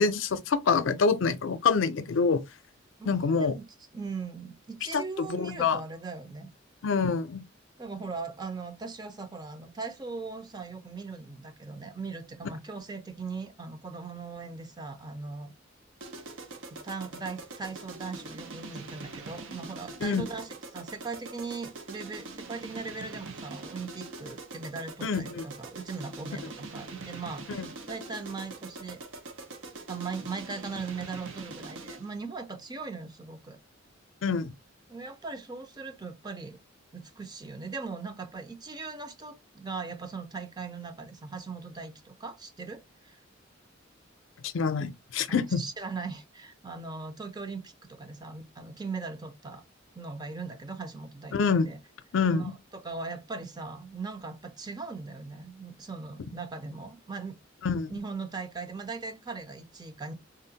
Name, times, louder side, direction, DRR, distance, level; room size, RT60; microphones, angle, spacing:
voice 1, 0.0-2.4 3.1-3.6 4.9-5.8 6.8-7.4 20.0-20.2 25.0-25.4 27.5-27.6 34.2-34.5 44.4-45.6 51.3-51.7 52.1-52.5 57.6-57.9, left 5 dB, 75° left, 0.5 m, -26 dB
voice 2, 3.0-3.6 3.9-6.5 7.8-15.5 16.8-29.0 29.9-33.6 34.9-36.6 36.9-43.2 45.3-49.6 50.0-51.4 51.6-51.8 52.3-57.4 57.9-60.1, right 4 dB, 20° right, 0.5 m, -39 dB
sound 1, 16.0-32.2, right 3 dB, 85° right, 0.6 m, -43 dB
3.7 x 2.1 x 2.7 m
head